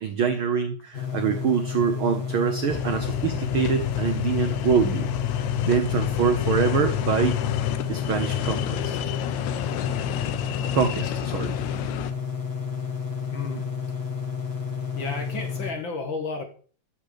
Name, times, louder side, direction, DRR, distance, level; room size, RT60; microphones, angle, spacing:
voice 1, 0.0-5.1 5.6-7.4 7.9-9.0 10.7-11.6, right 7 dB, 90° right, 8 dB, 1.1 m, -25 dB
sound 1, 0.9-15.7, left 6 dB, 35° left, 1.1 m, -31 dB
sound 2, 2.7-12.1, left 12 dB, 75° left, 1.9 m, -29 dB
voice 2, 13.3-13.7 14.9-16.4, left 4 dB, 50° left, 4 dB, 1.7 m, -32 dB
12.5 x 4.5 x 6.7 m, 0.41 s
omnidirectional pair, 3.5 m